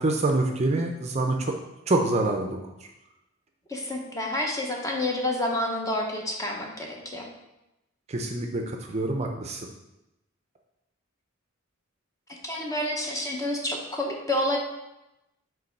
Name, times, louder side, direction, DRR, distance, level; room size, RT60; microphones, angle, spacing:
voice 1, 0.0-1.5 1.9-2.6 8.1-9.6, right 2 dB, 30° right, 3 dB, 0.5 m, -26 dB
voice 2, 3.7-7.3 12.4-14.6, left 1 dB, 15° left, 0 dB, 0.9 m, -29 dB
5.4 x 3.8 x 5.3 m, 0.93 s
head